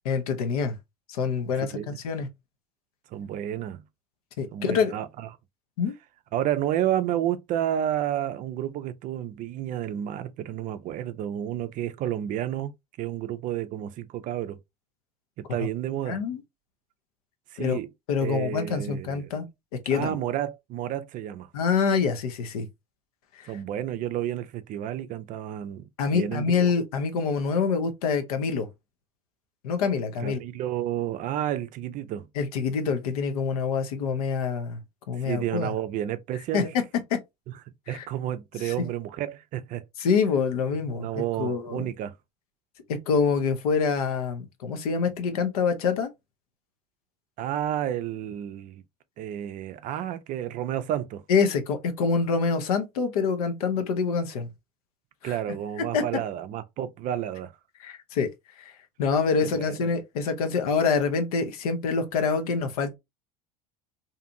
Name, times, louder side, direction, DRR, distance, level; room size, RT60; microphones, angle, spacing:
voice 1, 0.0-0.8 1.1-2.3 4.4-4.9 5.8-5.9 16.0-16.4 17.6-17.8 18.1-19.5 19.9-20.2 21.5-22.7 23.4-23.5 26.0-28.7 29.6-30.4 32.4-34.8 35.1-35.7 36.5-36.8 37.1-37.2 37.9-38.1 38.6-38.7 40.0-41.8 42.9-46.1 51.3-54.5 55.2-55.4 55.9-56.0 57.8-58.3 58.6-58.7 59.0-62.9, left 5 dB, 70° left, 0.7 m, -26 dB
voice 2, 1.5-1.9 3.1-3.8 4.5-5.3 6.3-14.6 15.4-16.2 17.5-17.9 18.2-19.3 19.9-21.5 23.5-26.7 30.2-32.3 35.2-36.7 37.5-37.6 37.9-39.8 40.9-42.1 47.4-48.8 49.2-51.2 55.2-57.5 59.4-59.9, right 11 dB, 45° right, 0.4 m, -31 dB
2.7 x 2.4 x 2.6 m
hypercardioid pair, 75°, 19 cm